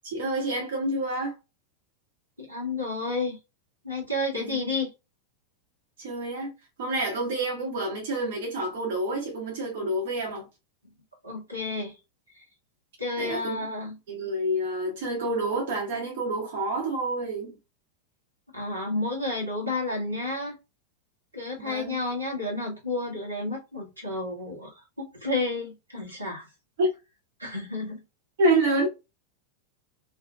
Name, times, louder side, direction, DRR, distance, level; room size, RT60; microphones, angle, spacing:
voice 1, 0.0-1.3 4.3-4.6 6.0-6.5 6.8-10.5 13.2-13.6 14.1-17.6 21.6-22.0 26.8-26.9 28.4-28.9, right 1 dB, 55° right, 1.0 m, -28 dB
voice 2, 2.4-3.4 3.8-4.9 11.2-11.9 12.4-12.5 13.0-13.9 18.5-20.5 21.3-24.7 25.0-26.5 27.4-28.0, left 2 dB, 85° right, 1.2 m, -31 dB
2.6 x 2.3 x 2.3 m
figure-of-eight pair, 90°, 0 cm